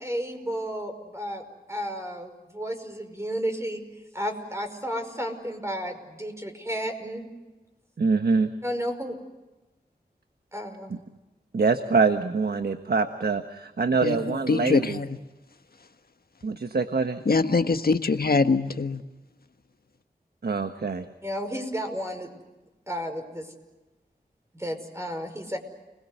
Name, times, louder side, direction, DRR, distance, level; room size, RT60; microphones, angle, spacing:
voice 1, 0.0-7.3 8.6-9.2 10.5-11.0 21.2-22.3 22.9-23.6 24.5-25.6, equal, 15° right, 5.4 m, -32 dB
voice 2, 8.0-8.5 11.5-15.0 16.4-17.2 20.4-21.1, right 4 dB, 65° right, 1.3 m, -24 dB
voice 3, 14.5-15.0 17.3-19.0, left 4 dB, 60° left, 1.5 m, -23 dB
30.0 x 21.5 x 8.1 m
wide cardioid pair, 75°, 17 cm